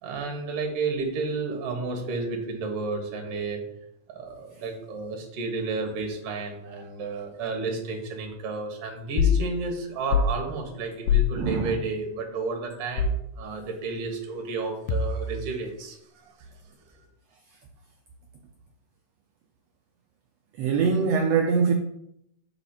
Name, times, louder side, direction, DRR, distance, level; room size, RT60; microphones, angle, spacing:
voice 1, 0.0-3.6 4.1-16.3, right 3 dB, 60° right, 1.9 m, -32 dB
sound 1, 9.2-9.4 10.1-10.4 11.1-11.3 13.0-13.3 14.9-15.4, left 6 dB, 85° left, 2.1 m, -22 dB
voice 2, 11.4-11.7 20.6-21.7, right 5 dB, 90° right, 1.4 m, -23 dB
5.1 x 4.0 x 5.7 m
omnidirectional pair, 3.5 m